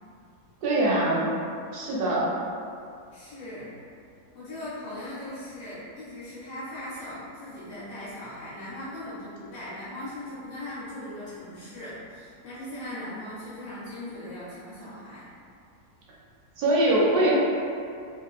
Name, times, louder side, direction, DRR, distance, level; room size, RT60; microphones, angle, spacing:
voice 1, 0.6-1.3 1.7-2.3 16.6-17.4, right 1 dB, 70° right, -6 dB, 0.9 m, -22 dB
voice 2, 3.1-3.7 4.3-15.2, left 1 dB, 75° left, -10 dB, 1.2 m, -39 dB
2.7 x 2.4 x 2.3 m, 2.4 s
omnidirectional pair, 1.9 m